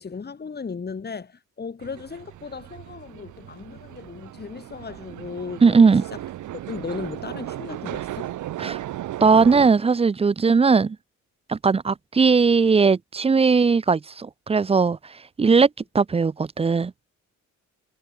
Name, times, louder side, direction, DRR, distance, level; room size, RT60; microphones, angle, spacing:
voice 1, 0.0-5.8 6.7-8.4, left 5 dB, 35° left, 3.3 m, -36 dB
sound 1, 1.8-9.7, right 13 dB, 75° right, 1.9 m, -36 dB
voice 2, 5.6-6.0 8.6-8.8 9.2-11.0 11.5-15.0 15.4-15.7 15.9-16.9, right 5 dB, 20° right, 0.5 m, -18 dB
cardioid pair, 90°, 30 cm